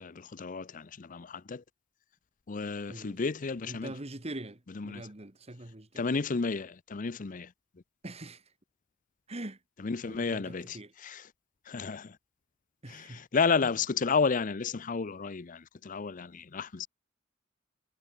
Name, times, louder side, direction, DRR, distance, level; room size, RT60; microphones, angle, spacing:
voice 1, 0.0-1.6 2.5-4.0 4.7-5.1 6.0-7.5 9.8-11.3 11.6-12.2 12.9-16.9, left 5 dB, 40° left, 0.6 m, -32 dB
voice 2, 3.7-6.0 8.0-8.4 9.3-9.6 10.1-10.9 12.8-13.2, right 1 dB, 30° right, 1.7 m, -43 dB
head